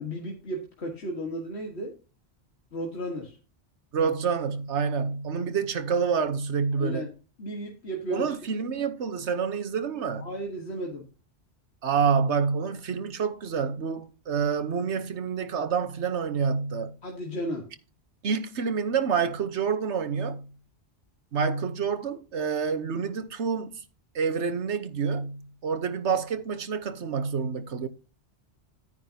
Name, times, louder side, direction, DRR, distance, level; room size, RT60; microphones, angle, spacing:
voice 1, 0.0-2.0 2.7-3.4 6.8-7.1 7.4-8.3 10.2-11.1 17.0-17.7, equal, 75° left, 2.0 m, -34 dB
voice 2, 3.9-7.1 8.1-10.3 11.8-16.9 18.2-20.5 21.3-23.8 24.1-27.9, right 6 dB, 90° right, 1.3 m, -28 dB
11.0 x 9.7 x 2.8 m
omnidirectional pair, 1.1 m